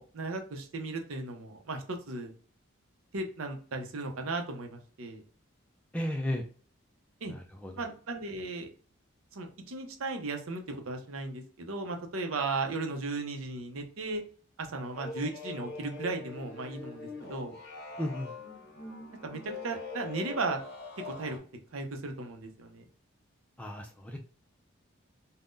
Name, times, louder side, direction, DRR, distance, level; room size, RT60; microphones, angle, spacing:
voice 1, 0.0-2.3 3.1-5.2 7.2-7.3 7.8-8.7 9.3-14.2 14.6-17.5 19.2-20.6 21.0-21.4 21.7-22.8, right 3 dB, 80° right, 4 dB, 0.6 m, -36 dB
voice 2, 5.9-6.4 7.3-7.7 18.0-18.3 23.6-24.2, left 1 dB, 5° left, 2 dB, 0.3 m, -34 dB
sound 1, 14.9-21.4, left 4 dB, 50° left, 0.8 m, -43 dB
3.6 x 2.1 x 2.5 m, 0.42 s
head